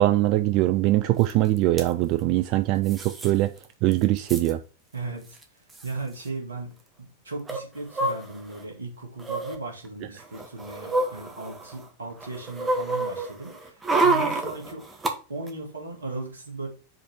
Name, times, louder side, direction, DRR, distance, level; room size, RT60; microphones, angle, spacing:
voice 1, 0.0-3.5 3.8-4.6, right 15 dB, 40° right, 0.3 m, -22 dB
sound 1, 1.3-1.4 1.6-1.9 2.9-3.3 3.6-3.7 3.9-4.5 5.4-5.5 5.7-5.9 7.5-8.6 9.2-9.6 10.2-11.8 12.2-15.1 15.5-15.6, right 2 dB, 15° right, 1.1 m, -28 dB
voice 2, 4.9-14.8 15.3-16.7, right 3 dB, 75° right, 2.0 m, -37 dB
5.1 x 4.3 x 4.6 m
figure-of-eight pair, 90°, 0 cm